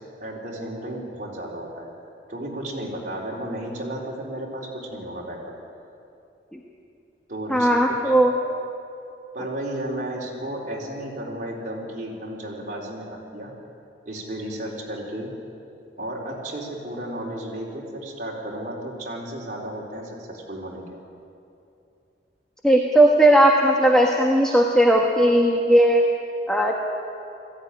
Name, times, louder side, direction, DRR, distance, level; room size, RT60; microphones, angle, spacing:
voice 1, 0.2-1.9 2.3-5.5 7.3-8.2 9.3-13.5 14.1-15.4 16.0-20.8, right 1 dB, 45° right, -2 dB, 4.2 m, -33 dB
voice 2, 7.5-8.3 22.6-26.0 26.5-26.7, right 1 dB, 5° left, 0 dB, 1.4 m, -17 dB
20.0 x 15.5 x 10.0 m, 2.6 s
head